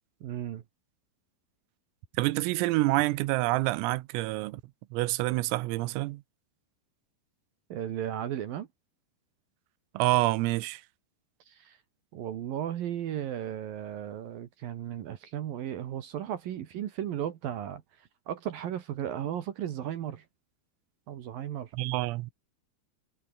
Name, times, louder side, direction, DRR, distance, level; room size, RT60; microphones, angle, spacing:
voice 1, 0.2-0.6 7.7-8.7 11.5-11.8 12.1-20.2 21.1-21.7, right 10 dB, 65° right, 2.4 m, -35 dB
voice 2, 2.2-4.6 4.9-6.2 10.0-10.8 21.7-22.3, right 19 dB, 85° right, 3.6 m, -27 dB
omnidirectional pair, 5.9 m